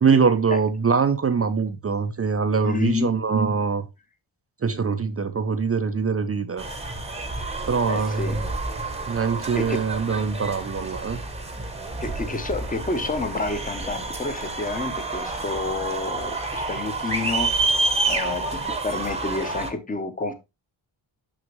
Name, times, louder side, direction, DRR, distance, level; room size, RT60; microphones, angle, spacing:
voice 1, 0.0-3.9 4.6-6.7 7.6-8.4 9.1-11.2, right 5 dB, 30° right, 0.4 m, -23 dB
voice 2, 2.6-3.1 7.9-8.4 9.5-9.9 12.0-17.7 18.1-20.3, left 3 dB, 15° left, 0.7 m, -29 dB
sound 1, 6.6-19.7, right 3 dB, 15° right, 0.8 m, -29 dB
6.1 x 6.1 x 3.0 m
wide cardioid pair, 180°, 49 cm